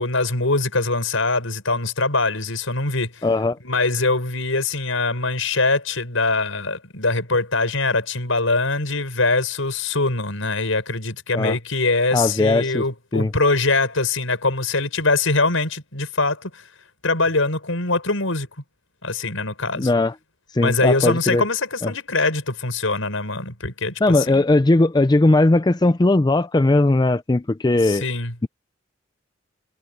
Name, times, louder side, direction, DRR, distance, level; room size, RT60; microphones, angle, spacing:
voice 1, 0.0-3.3 3.6-16.6 17.0-18.5 19.0-19.9 20.6-24.4 27.8-28.3, left 3 dB, 85° left, 6.2 m, -23 dB
voice 2, 3.2-3.6 11.3-11.6 12.1-12.8 13.1-13.3 19.8-20.1 20.5-21.4 21.8-21.9 24.0-28.0, left 2 dB, 20° left, 0.4 m, -18 dB
head